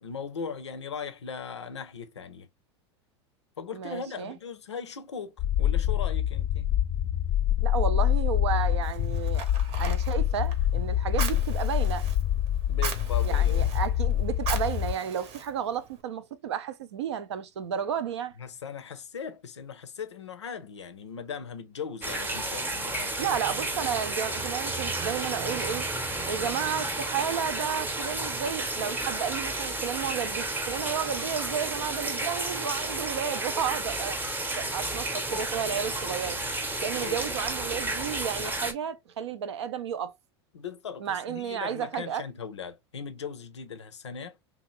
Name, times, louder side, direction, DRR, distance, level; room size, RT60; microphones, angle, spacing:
voice 1, 0.0-2.5 3.6-6.7 12.7-13.7 18.4-23.1 37.0-37.3 40.5-44.6, left 6 dB, 90° left, 0.5 m, -39 dB
voice 2, 3.7-4.4 7.6-12.1 13.2-18.3 23.2-25.9 26.3-34.2 34.6-36.4 36.8-40.1 41.0-42.3, right 8 dB, 75° right, 0.5 m, -32 dB
sound 1, 5.4-14.9, left 11 dB, 40° left, 0.4 m, -26 dB
Fire, 8.8-16.0, right 6 dB, 45° right, 0.8 m, -40 dB
sound 2, 22.0-38.7, right 2 dB, 15° right, 0.7 m, -32 dB
2.8 x 2.4 x 3.0 m
hypercardioid pair, 90°, 14 cm